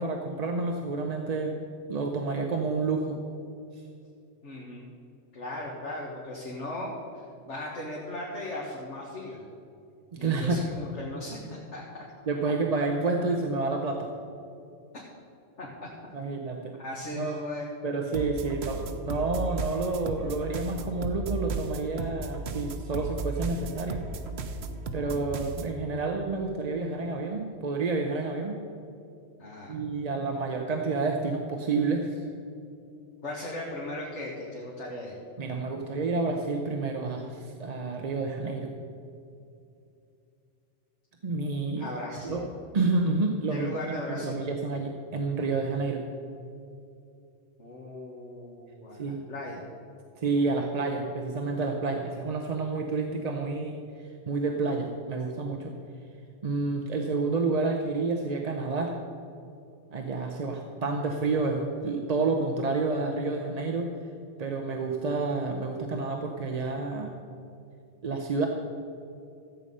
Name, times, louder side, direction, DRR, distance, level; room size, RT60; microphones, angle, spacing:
voice 1, 0.0-1.6 1.9-3.2 3.7-3.8 10.1-10.6 12.3-14.1 16.1-16.8 17.1-17.4 17.8-24.0 24.9-28.6 29.7-32.3 35.4-38.7 41.2-41.9 42.2-42.5 42.7-46.0 49.0-49.2 50.2-55.7 56.4-59.0 59.9-63.9 64.4-67.1 68.0-68.5, right 3 dB, 40° right, 3 dB, 0.8 m, -29 dB
voice 2, 4.4-4.9 5.3-9.4 10.2-12.0 15.6-15.9 16.8-17.7 29.4-29.8 33.2-35.2 41.8-42.4 43.5-44.4 47.6-49.7, left 1 dB, 75° left, -4 dB, 1.9 m, -37 dB
sound 1, 18.1-25.8, right 3 dB, 65° right, 1.0 m, -35 dB
14.0 x 8.2 x 5.4 m, 2.6 s
omnidirectional pair, 1.2 m